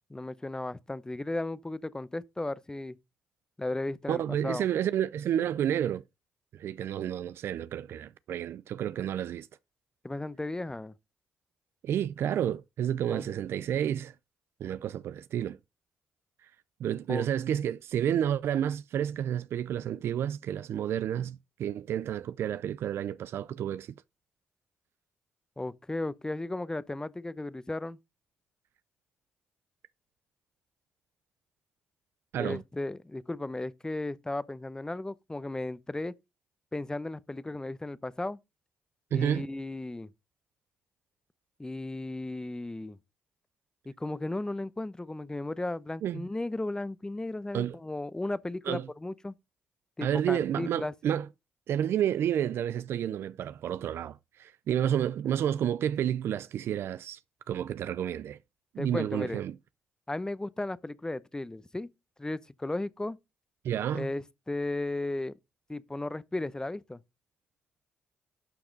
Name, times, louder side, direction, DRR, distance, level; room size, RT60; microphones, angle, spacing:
voice 1, 0.1-3.0 3.6-4.6 10.0-10.9 13.1-13.3 17.1-17.3 25.6-28.0 32.4-36.1 36.7-38.4 39.1-40.1 41.6-43.0 43.9-49.3 50.0-50.9 58.8-59.4 60.1-61.9 62.2-63.2 63.9-65.3 65.7-67.0, left 2 dB, 15° left, 0.8 m, -35 dB
voice 2, 4.1-6.0 6.5-9.5 11.8-14.1 14.6-15.6 16.4-16.5 16.8-23.9 32.3-32.6 39.1-39.5 46.0-46.2 47.5-47.8 48.7-48.9 50.0-51.3 51.7-57.2 57.5-58.4 58.7-59.6 63.6-64.1, right 10 dB, 70° right, 0.5 m, -30 dB
11.5 x 5.9 x 4.0 m
supercardioid pair, 55°, 4 cm